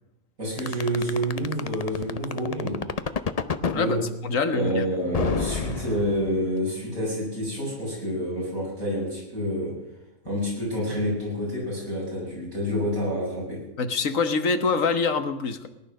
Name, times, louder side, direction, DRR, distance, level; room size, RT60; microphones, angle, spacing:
voice 1, 0.4-2.8 3.7-4.1 4.5-9.8 10.3-13.6, equal, 85° right, -4 dB, 8.0 m, -28 dB
sound 1, 0.6-3.8 5.1-6.5, left 5 dB, 40° left, 0.6 m, -28 dB
voice 2, 4.2-4.9 13.8-15.7, left 4 dB, 70° left, 9 dB, 1.6 m, -25 dB
19.0 x 11.5 x 6.5 m, 0.92 s
omnidirectional pair, 1.4 m